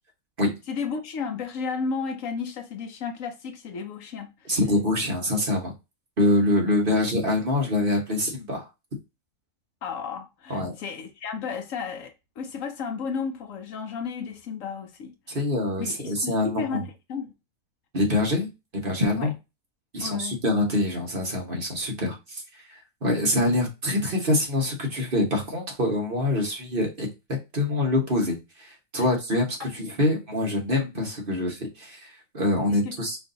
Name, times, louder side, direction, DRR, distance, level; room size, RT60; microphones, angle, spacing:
voice 1, 0.7-4.6 9.8-15.1 15.8-17.3 19.2-19.3 20.0-20.4 32.7-33.0, left 5 dB, 70° left, 1.0 m, -33 dB
voice 2, 4.4-5.7 6.2-8.7 10.5-10.7 15.3-16.8 17.9-19.3 19.9-22.4 22.7-33.2, left 1 dB, 40° right, 1.4 m, -25 dB
5.0 x 2.7 x 3.9 m
omnidirectional pair, 1.5 m